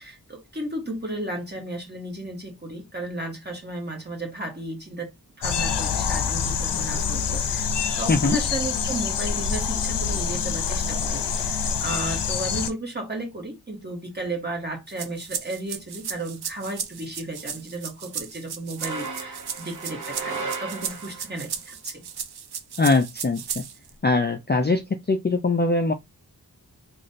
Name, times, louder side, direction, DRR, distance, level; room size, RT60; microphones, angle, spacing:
voice 1, 0.0-7.7 8.0-22.0, right 1 dB, 25° right, 1.6 m, -34 dB
sound 1, 5.4-12.7, left 6 dB, 85° left, 0.6 m, -26 dB
voice 2, 8.1-8.4 22.8-23.6 24.0-24.8 25.1-25.9, left 3 dB, 25° left, 0.4 m, -21 dB
sound 2, 14.9-23.9, right 7 dB, 70° right, 0.6 m, -35 dB
sound 3, 18.8-21.4, right 4 dB, 50° right, 1.0 m, -34 dB
3.1 x 2.4 x 4.0 m
wide cardioid pair, 95°, 40 cm